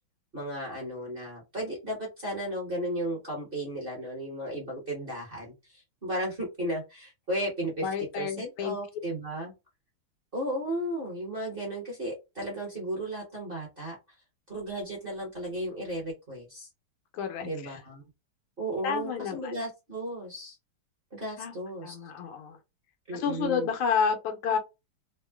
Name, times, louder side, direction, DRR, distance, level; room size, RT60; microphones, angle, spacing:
voice 1, 0.3-7.9 8.2-9.5 10.3-13.9 14.5-16.7 17.4-18.0 18.6-20.6 21.1-22.0 23.1-23.7, right 1 dB, 40° right, 0.8 m, -34 dB
voice 2, 7.8-8.8 17.1-17.8 18.8-19.5 21.4-21.5 21.8-22.6 23.1-24.6, left 6 dB, 85° left, 1.5 m, -30 dB
3.6 x 2.1 x 2.2 m
omnidirectional pair, 2.3 m